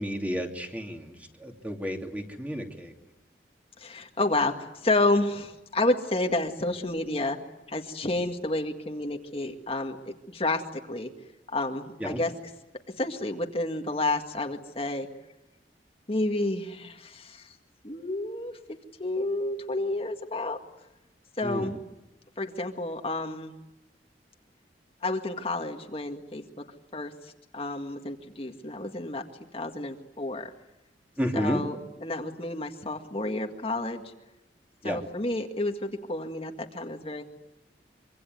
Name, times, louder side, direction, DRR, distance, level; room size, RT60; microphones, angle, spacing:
voice 1, 0.0-2.9 12.0-12.2 21.4-21.7 31.2-31.6 34.8-35.0, equal, 10° right, 3 dB, 2.7 m, -31 dB
voice 2, 3.8-7.4 7.7-10.6 10.9-11.1 11.5-12.3 13.0-15.1 16.1-17.6 17.8-18.5 19.0-20.6 21.4-21.8 22.4-23.5 25.0-26.4 26.9-29.2 29.5-30.5 31.3-34.1 34.8-37.2, left 2 dB, 35° left, 4 dB, 1.9 m, -30 dB
25.5 x 25.0 x 9.4 m, 0.95 s
head